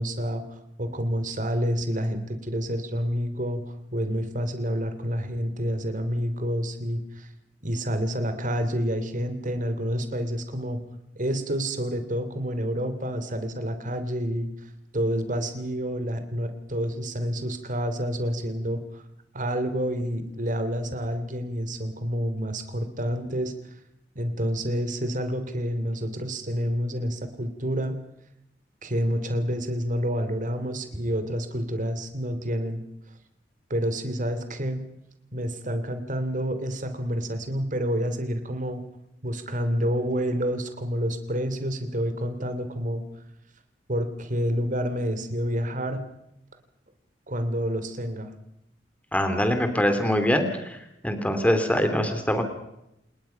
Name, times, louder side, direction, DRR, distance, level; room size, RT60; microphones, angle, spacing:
voice 1, 0.0-7.3 7.6-10.8 11.2-14.5 14.9-19.0 19.3-23.5 24.1-28.0 28.8-32.8 33.7-34.8 35.3-38.8 39.2-43.0 43.9-46.0 47.3-48.3, equal, 45° right, 9 dB, 3.1 m, -28 dB
voice 2, 49.1-50.8 51.0-52.4, equal, 10° left, 7 dB, 2.9 m, -23 dB
28.5 x 19.5 x 5.8 m, 0.83 s
head